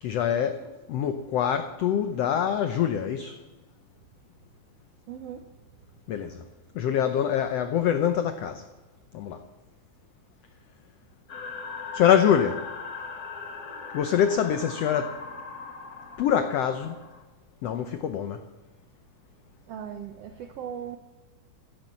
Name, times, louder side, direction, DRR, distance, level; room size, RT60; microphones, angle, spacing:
voice 1, 0.0-3.4 6.1-6.4 6.7-8.6 9.1-9.4 11.9-12.6 13.9-15.1 16.2-17.0 17.6-18.4, left 9 dB, 85° left, 9 dB, 1.4 m, -25 dB
voice 2, 5.1-5.5 19.7-21.0, right 8 dB, 80° right, 8 dB, 1.4 m, -38 dB
sound 1, 11.3-17.2, left 5 dB, 50° left, 1.1 m, -39 dB
15.5 x 12.0 x 7.4 m, 1.2 s
omnidirectional pair, 3.9 m